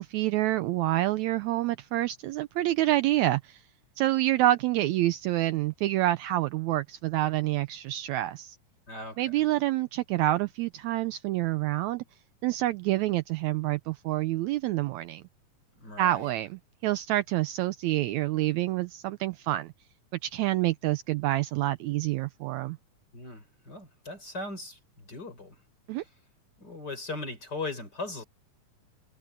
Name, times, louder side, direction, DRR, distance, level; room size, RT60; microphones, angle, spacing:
voice 1, 0.0-3.6 4.0-8.6 9.2-12.0 12.4-15.2 16.0-19.7 20.2-22.8 25.9-26.0, right 16 dB, 85° right, 1.6 m, -27 dB
voice 2, 8.9-9.2 15.7-16.3 23.1-25.6 26.0-26.1 26.6-28.2, left 2 dB, 30° left, 5.2 m, -39 dB
omnidirectional pair, 3.8 m